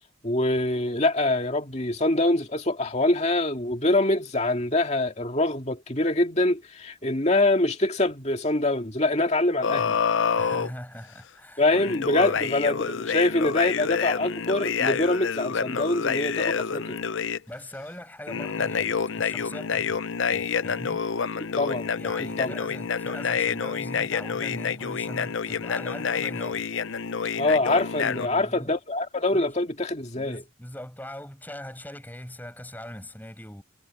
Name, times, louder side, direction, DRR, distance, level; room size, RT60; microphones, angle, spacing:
voice 1, 0.2-10.0 11.6-17.0 21.6-21.9 22.4-22.5 27.4-30.4, left 2 dB, 30° left, 2.3 m, -24 dB
sound 1, 9.6-10.7 11.7-17.4 18.3-28.3, left 6 dB, 65° left, 0.6 m, -28 dB
voice 2, 10.4-12.4 17.5-21.0 22.0-26.7 28.1-28.8 29.3-29.6 30.2-33.6, left 1 dB, 10° left, 5.5 m, -41 dB
head